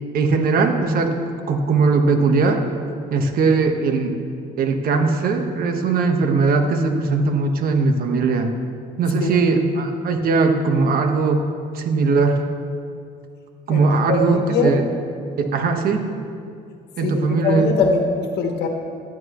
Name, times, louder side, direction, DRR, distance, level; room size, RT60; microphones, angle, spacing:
voice 1, 0.1-1.2 1.5-2.6 3.1-4.1 4.6-8.5 9.0-11.5 11.7-12.4 13.7-14.9 15.4-16.1 17.0-17.7, right 4 dB, 60° right, 5 dB, 1.4 m, -19 dB
voice 2, 14.1-14.7 17.0-17.1 17.4-18.7, left 3 dB, 80° left, 3 dB, 1.4 m, -21 dB
18.5 x 12.0 x 3.2 m, 2.3 s
cardioid pair, 110°, 17 cm